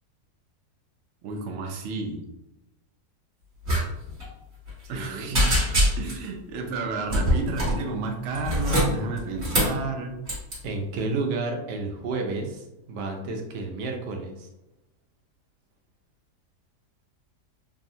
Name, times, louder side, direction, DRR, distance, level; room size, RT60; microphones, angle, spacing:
voice 1, 1.2-2.2 4.9-5.5 6.0-10.2, right 3 dB, 70° right, 3 dB, 0.7 m, -31 dB
sound 1, 3.6-3.8 4.1-4.2 4.7-5.0 5.3-6.2 7.1-7.8 8.3-9.8 10.2-10.5, equal, 45° right, 1.4 m, -23 dB
voice 2, 4.8-5.3 10.6-14.5, right 3 dB, 90° right, 3 dB, 1.2 m, -31 dB
3.6 x 2.0 x 2.6 m, 0.94 s
omnidirectional pair, 1.7 m